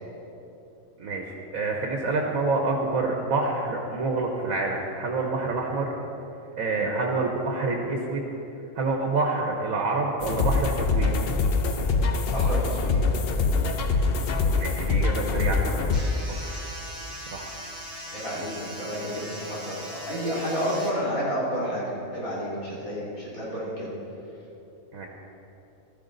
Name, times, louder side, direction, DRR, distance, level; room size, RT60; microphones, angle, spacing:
voice 1, 1.0-5.9 6.6-8.3 8.7-11.2 14.6-16.1 16.4-16.7 17.3-17.5 24.9-25.1, right 3 dB, 80° right, 0 dB, 1.5 m, -27 dB
sound 1, 10.2-16.0, left 4 dB, 55° left, 0.8 m, -24 dB
voice 2, 12.3-13.0 18.1-23.9, equal, 85° left, -8 dB, 3.4 m, -30 dB
sound 2, 15.9-20.9, equal, 5° left, 3.5 m, -40 dB
15.5 x 12.5 x 3.9 m, 2.9 s
omnidirectional pair, 1.4 m